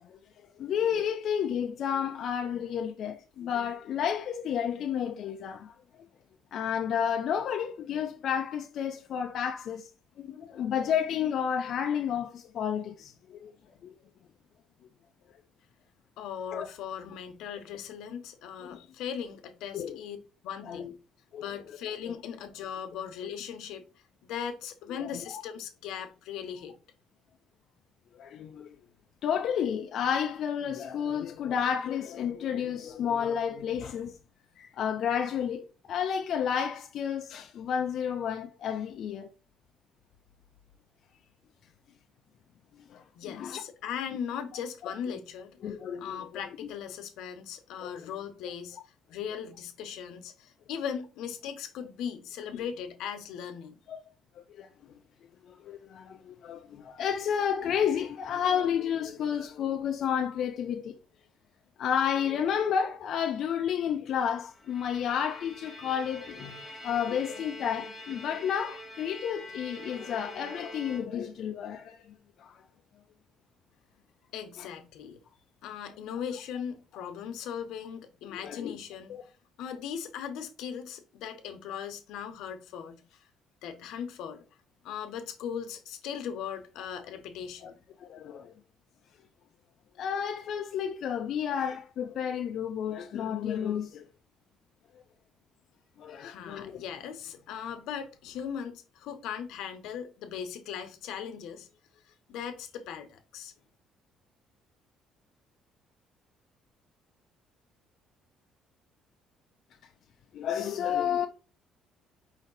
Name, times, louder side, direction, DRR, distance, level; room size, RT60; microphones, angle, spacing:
voice 1, 0.0-5.7 6.5-9.9 10.2-13.5 13.8-13.9 16.5-16.7 18.6-18.8 19.7-20.0 20.7-20.9 21.3-21.8 24.9-25.4 28.2-28.7 29.2-34.1 34.6-39.3 42.9-43.6 44.8-44.9 45.6-46.3 47.8-48.1 52.5-52.6 53.9-54.0 54.5-55.0 55.5-60.9 61.8-72.6 74.6-74.7 78.3-78.8 79.1-79.2 87.6-87.7 88.0-88.5 90.0-94.0 96.0-96.7 110.3-111.3, left 8 dB, 50° left, 0.4 m, -31 dB
voice 2, 16.2-20.2 20.4-20.9 21.4-23.8 24.2-26.7 43.1-48.8 49.1-53.8 74.3-75.2 75.6-79.2 79.6-83.2 83.6-84.4 84.8-87.8 96.2-101.7 102.3-103.5, left 8 dB, 80° left, 0.8 m, -38 dB
Bowed string instrument, 64.5-71.5, equal, ahead, 1.1 m, -45 dB
5.1 x 2.6 x 3.9 m
cardioid pair, 165°, 0 cm